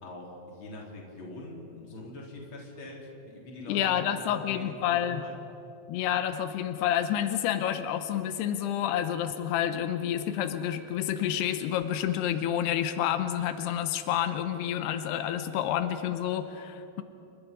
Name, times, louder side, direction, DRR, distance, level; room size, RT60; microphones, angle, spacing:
voice 1, 0.0-5.4, left 1 dB, 30° left, -2 dB, 3.8 m, -43 dB
voice 2, 3.7-5.2 5.9-17.0, left 10 dB, 90° left, 9 dB, 2.9 m, -29 dB
27.5 x 23.0 x 5.2 m, 2.9 s
omnidirectional pair, 4.7 m